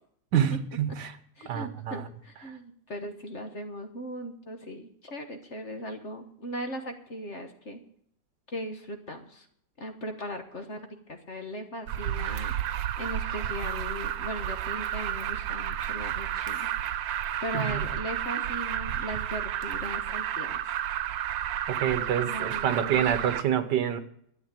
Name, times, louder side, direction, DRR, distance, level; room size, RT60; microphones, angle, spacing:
voice 1, 0.3-1.1 1.4-2.0 17.5-17.8 21.7-24.0, right 9 dB, 70° right, 11 dB, 1.7 m, -27 dB
voice 2, 1.4-7.8 8.5-9.5 9.8-10.8 11.1-16.7 17.4-20.6 22.0-23.1, equal, 40° left, 6 dB, 1.5 m, -38 dB
Alarm, 11.9-23.4, right 11 dB, 90° right, 1.5 m, -31 dB
12.5 x 8.8 x 8.9 m, 0.68 s
omnidirectional pair, 2.0 m